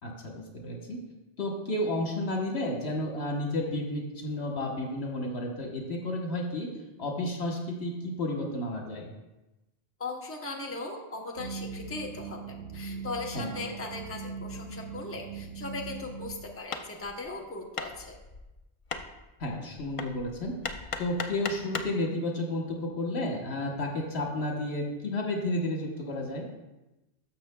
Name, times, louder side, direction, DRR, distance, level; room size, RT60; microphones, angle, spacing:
voice 1, 0.0-1.0 1.4-6.7 7.0-9.1 13.3-13.5 19.4-20.5 21.0-26.5, left 1 dB, 80° left, 0 dB, 1.4 m, -32 dB
voice 2, 10.0-18.2, left 3 dB, 15° left, 0 dB, 0.8 m, -38 dB
sound 1, 11.4-16.4, right 5 dB, 65° right, 1.3 m, -40 dB
Hammer, 16.6-22.0, left 4 dB, 45° left, 0.4 m, -39 dB
13.0 x 6.1 x 2.2 m, 1.0 s
omnidirectional pair, 1.1 m